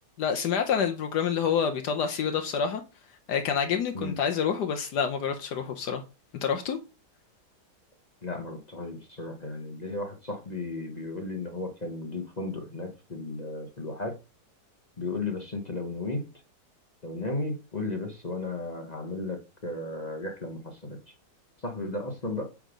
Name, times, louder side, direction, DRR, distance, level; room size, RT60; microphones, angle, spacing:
voice 1, 0.2-2.8 3.3-6.0 6.4-6.8, left 7 dB, 75° left, 1.3 m, -27 dB
voice 2, 8.2-14.2 15.0-16.3 17.0-21.1 21.6-22.4, left 2 dB, 30° left, 0.9 m, -34 dB
8.2 x 3.6 x 5.1 m
omnidirectional pair, 1.9 m